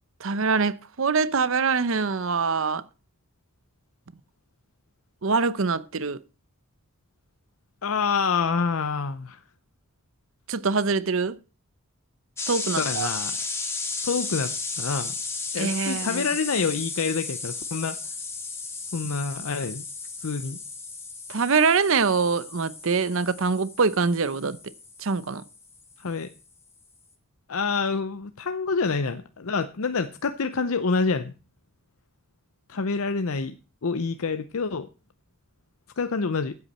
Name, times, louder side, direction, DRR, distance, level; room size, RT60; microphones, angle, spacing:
voice 1, 0.2-2.8 5.2-6.2 10.5-11.4 12.5-13.1 15.6-16.2 21.3-24.6 25.0-25.4, right 4 dB, 60° right, 0.7 m, -24 dB
voice 2, 7.8-9.4 12.8-13.4 14.0-15.1 15.5-18.0 18.9-19.8 20.2-20.6 26.0-26.3 27.5-31.3 32.7-33.6 33.8-34.9 36.0-36.6, left 4 dB, 70° left, 0.7 m, -27 dB
sound 1, 12.4-26.0, left 4 dB, 10° left, 1.7 m, -34 dB
14.5 x 8.3 x 4.2 m
head